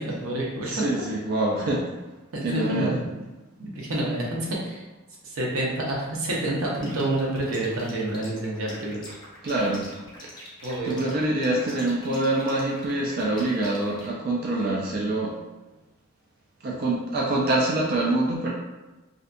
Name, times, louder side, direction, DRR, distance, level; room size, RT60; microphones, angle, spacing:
voice 1, 0.0-0.7 1.6-1.8 2.3-3.0 3.6-4.8 5.2-9.0 10.6-11.0, right 1 dB, 85° right, -3 dB, 0.7 m, -28 dB
voice 2, 0.6-1.9 2.4-3.0 9.4-9.9 10.8-15.4 16.6-18.5, right 2 dB, 45° right, -3 dB, 0.3 m, -25 dB
sound 1, 6.8-14.1, left 1 dB, 20° left, 0.6 m, -45 dB
2.6 x 2.1 x 2.5 m, 1.1 s
head